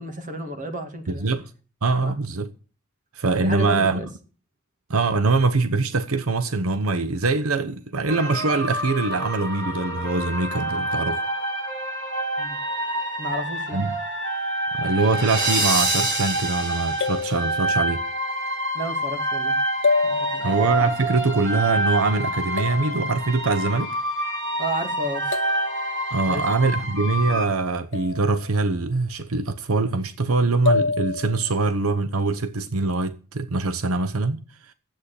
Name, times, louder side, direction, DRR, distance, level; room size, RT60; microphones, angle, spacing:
voice 1, 0.0-1.3 2.0-2.2 3.4-4.1 12.4-12.6 13.2-13.8 18.7-19.6 20.0-20.6 24.6-25.4 26.3-26.4 26.7-26.9, right 1 dB, 40° right, 2.3 m, -31 dB
voice 2, 1.1-1.5 1.8-2.5 3.1-4.0 4.9-11.2 13.7-13.9 14.8-18.0 20.4-23.9 26.1-34.4, right 3 dB, 85° right, 0.9 m, -23 dB
sound 1, 8.1-27.5, right 1 dB, 60° right, 6.5 m, -27 dB
sound 2, 15.6-16.1 17.0-18.3 19.8-20.9 22.6-23.6 25.3-26.4 27.9-28.8 30.7-31.7, left 4 dB, 60° left, 0.8 m, -28 dB
10.5 x 8.2 x 8.6 m
head